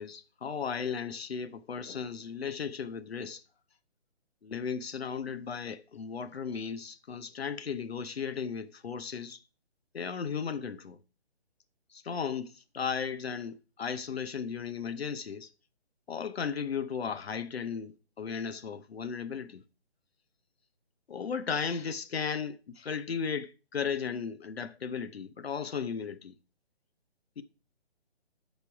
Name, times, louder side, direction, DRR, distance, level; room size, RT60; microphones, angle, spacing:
voice 1, 0.0-3.4 4.4-9.4 9.9-11.0 11.9-15.5 16.1-19.6 21.1-26.3 27.4-27.5, left 6 dB, 70° left, 0.8 m, -35 dB
7.4 x 5.3 x 5.9 m
figure-of-eight pair, 145°, 32 cm